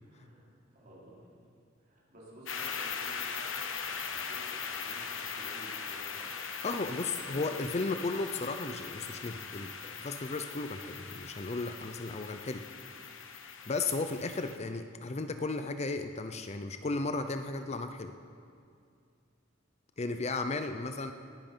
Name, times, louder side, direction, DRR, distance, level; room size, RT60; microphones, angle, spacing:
voice 1, 0.1-0.4 0.7-1.3 1.8-6.3 7.3-8.0, right 1 dB, 45° right, -6 dB, 4.5 m, -52 dB
sound 1, 2.5-14.6, left 6 dB, 80° left, 1.1 m, -40 dB
voice 2, 6.6-12.6 13.7-18.1 20.0-21.1, left 3 dB, 35° left, 8 dB, 0.6 m, -35 dB
19.0 x 10.5 x 5.5 m, 2.3 s
head